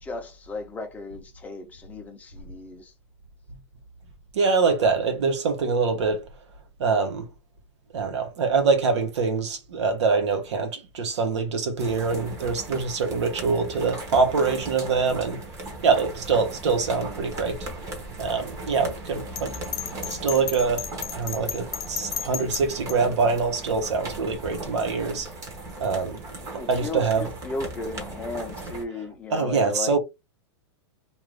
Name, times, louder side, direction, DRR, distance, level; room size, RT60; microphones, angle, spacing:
voice 1, 0.0-2.9 26.5-30.0, left 3 dB, 10° left, 0.6 m, -35 dB
voice 2, 4.3-6.2 6.8-7.3 7.9-15.4 15.8-17.6 18.2-19.6 20.0-20.9 21.1-25.3 25.8-26.2 26.7-27.2 29.3-30.0, right 4 dB, 75° right, 1.1 m, -24 dB
sound 1, 11.8-28.8, right 2 dB, 20° right, 0.9 m, -38 dB
Bell, 19.4-23.0, left 11 dB, 60° left, 0.6 m, -33 dB
2.6 x 2.5 x 3.2 m
supercardioid pair, 155°, 15 cm